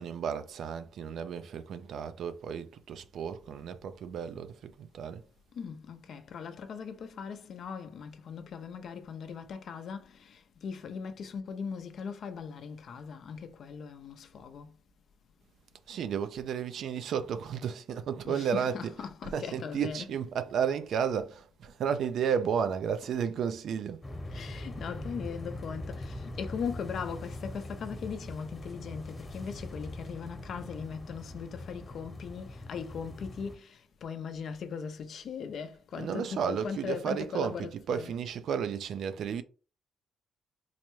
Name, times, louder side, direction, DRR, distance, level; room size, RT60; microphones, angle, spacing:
voice 1, 0.0-5.2 15.9-24.0 35.9-39.4, right 7 dB, 70° right, 0.4 m, -33 dB
voice 2, 5.5-14.7 18.2-20.1 24.3-38.1, left 6 dB, 65° left, 0.5 m, -39 dB
sound 1, 24.0-33.6, left 1 dB, 25° left, 1.0 m, -42 dB
3.9 x 2.2 x 3.0 m
cardioid pair, 80°, 0 cm